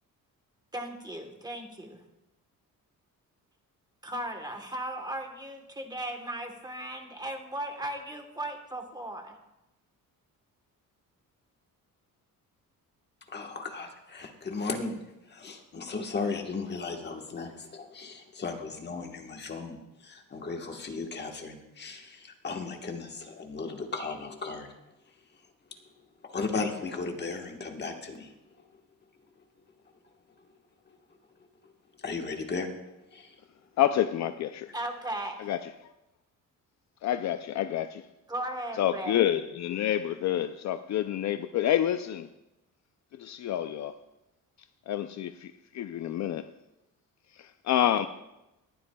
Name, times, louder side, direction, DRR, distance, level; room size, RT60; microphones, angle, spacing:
voice 1, 0.7-2.0 4.0-9.4 34.7-35.5 38.3-39.3, right 1 dB, 10° right, 1.2 m, -37 dB
voice 2, 13.3-24.7 26.2-28.6 32.0-32.7 33.1-33.4, left 4 dB, 30° left, 1.3 m, -36 dB
voice 3, 33.8-34.7 35.4-35.7 37.0-38.1 38.8-42.3 43.2-43.9 44.9-46.5 47.3-48.1, left 11 dB, 55° left, 0.4 m, -28 dB
19.5 x 11.0 x 2.3 m
cardioid pair, 155°, 34 cm